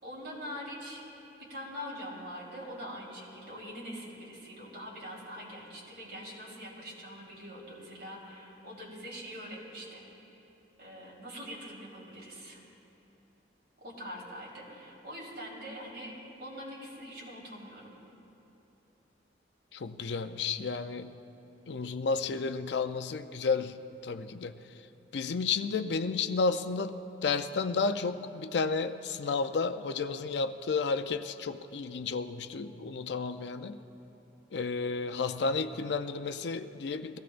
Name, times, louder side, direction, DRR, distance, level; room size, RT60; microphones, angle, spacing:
voice 1, 0.0-1.0 1.4-10.1 10.8-12.6 13.8-18.0, equal, 60° right, -5 dB, 3.8 m, -43 dB
voice 2, 19.7-21.2 21.7-24.6 25.1-27.0 27.2-33.8 34.5-37.2, left 4 dB, 80° left, 10 dB, 0.5 m, -32 dB
22.5 x 15.5 x 2.5 m, 3.0 s
head